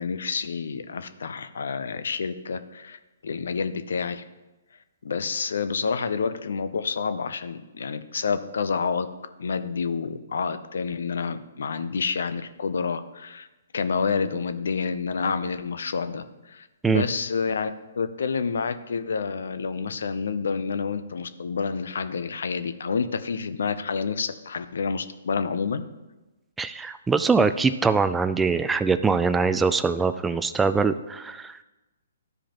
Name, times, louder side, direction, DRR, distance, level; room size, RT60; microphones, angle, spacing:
voice 1, 0.0-4.2 5.0-9.1 9.4-13.5 13.7-25.8, left 5 dB, 75° left, 11 dB, 0.6 m, -29 dB
voice 2, 26.6-31.6, right 4 dB, 10° right, 11 dB, 0.3 m, -23 dB
13.0 x 4.9 x 3.0 m, 1.1 s
hypercardioid pair, 140°, 0 cm